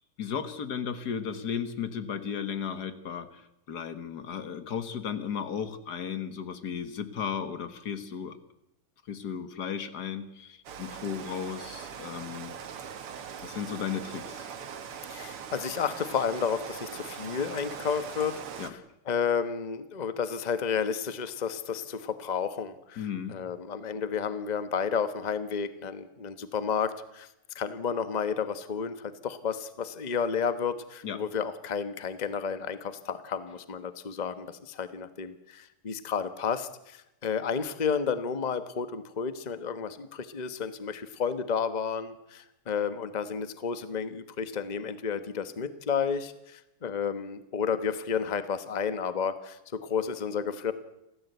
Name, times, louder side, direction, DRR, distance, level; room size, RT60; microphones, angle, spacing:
voice 1, 0.2-8.4 9.1-12.5 13.4-14.5 18.6-18.7 23.0-23.4 31.0-31.2, left 7 dB, 50° left, 11 dB, 1.9 m, -35 dB
Rain, 10.7-18.7, right 7 dB, 80° right, 2.4 m, -41 dB
voice 2, 15.1-18.8 19.1-23.0 23.3-27.3 27.5-50.7, left 6 dB, 25° left, 11 dB, 0.9 m, -31 dB
28.5 x 14.5 x 8.2 m, 0.88 s
omnidirectional pair, 2.4 m